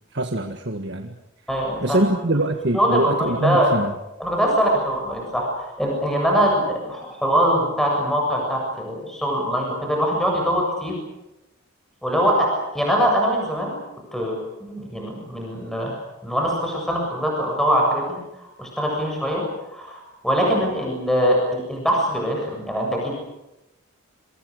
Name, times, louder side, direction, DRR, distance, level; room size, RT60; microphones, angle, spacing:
voice 1, 0.1-1.2 1.8-3.9, right 1 dB, 55° right, 5 dB, 1.7 m, -23 dB
voice 2, 1.5-2.0 2.7-3.7 4.2-10.9 12.0-13.7 14.1-14.4 14.6-16.0 16.2-18.2 18.6-19.4 19.7-23.2, equal, ahead, -1 dB, 7.5 m, -22 dB
28.5 x 24.0 x 6.7 m, 0.92 s
head